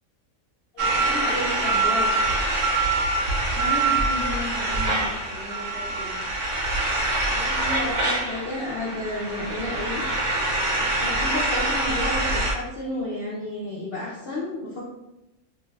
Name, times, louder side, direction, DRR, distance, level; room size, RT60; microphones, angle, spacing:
voice 1, 0.7-2.2 7.3-10.0 10.8-14.8, left 1 dB, 60° left, -6 dB, 0.6 m, -32 dB
sound 1, 0.8-12.5, right 2 dB, 65° right, 0.9 m, -25 dB
voice 2, 3.5-6.2, left 2 dB, 35° right, -8 dB, 0.8 m, -34 dB
2.6 x 2.2 x 3.2 m, 0.92 s
omnidirectional pair, 1.5 m